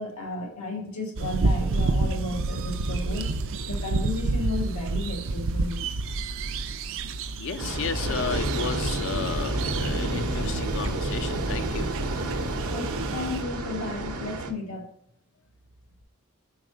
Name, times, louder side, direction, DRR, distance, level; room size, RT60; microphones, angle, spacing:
voice 1, 0.0-3.3 3.7-5.9 12.7-14.9, left 2 dB, 85° left, 1 dB, 1.8 m, -33 dB
sound 1, 1.2-13.4, right 3 dB, 60° right, 0.4 m, -30 dB
voice 2, 7.4-11.9, left 6 dB, 55° left, 10 dB, 0.5 m, -33 dB
sound 2, 7.6-14.5, right 2 dB, 80° right, 0.8 m, -29 dB
4.7 x 4.2 x 5.1 m, 0.68 s
head